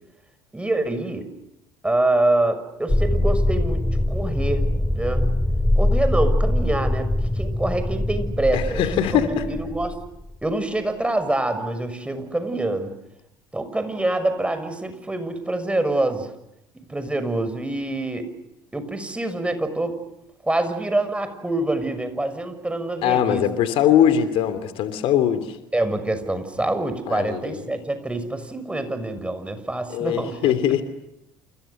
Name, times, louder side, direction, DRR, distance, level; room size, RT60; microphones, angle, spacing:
voice 1, 0.5-1.3 1.8-3.8 4.1-4.7 4.9-5.2 5.8-7.1 7.3-8.8 9.1-10.0 10.4-12.9 13.5-16.3 16.9-18.3 18.7-20.0 20.4-23.5 25.7-30.5, right 2 dB, 10° right, 10 dB, 6.3 m, -25 dB
sound 1, 2.9-10.3, left 1 dB, 5° left, 2.9 m, -23 dB
voice 2, 8.5-9.4 23.0-25.6 27.1-27.8 29.9-30.8, left 10 dB, 60° left, 11 dB, 2.9 m, -21 dB
29.5 x 29.0 x 6.8 m, 0.86 s
hypercardioid pair, 60°, 11 cm